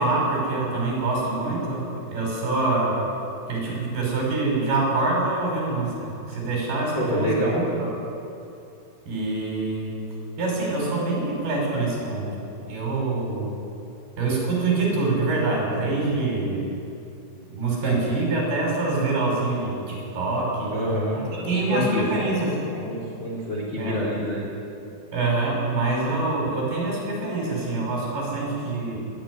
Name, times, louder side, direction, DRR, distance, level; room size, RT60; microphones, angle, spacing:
voice 1, 0.0-3.0 3.5-7.9 9.1-9.9 10.4-12.4 12.7-13.5 14.2-16.7 17.5-20.8 21.4-22.6 23.8-24.0 25.1-29.0, right 3 dB, 55° right, -2 dB, 7.7 m, -25 dB
voice 2, 7.0-7.8 20.7-22.3 22.7-24.5, equal, 25° left, -4 dB, 3.9 m, -27 dB
20.0 x 14.0 x 9.8 m, 2.7 s
omnidirectional pair, 5.6 m